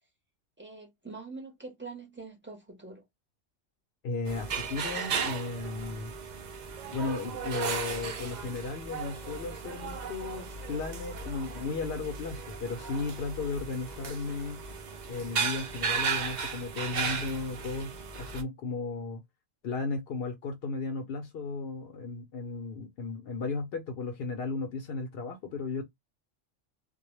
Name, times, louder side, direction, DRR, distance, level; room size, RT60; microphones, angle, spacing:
voice 1, 0.6-3.0, right 3 dB, 15° right, 0.5 m, -44 dB
voice 2, 4.0-6.1 6.9-14.6 15.1-19.2 19.6-25.8, left 4 dB, 60° left, 0.7 m, -35 dB
sound 1, 4.3-18.4, right 5 dB, 75° right, 0.4 m, -35 dB
2.2 x 2.1 x 3.0 m
omnidirectional pair, 1.3 m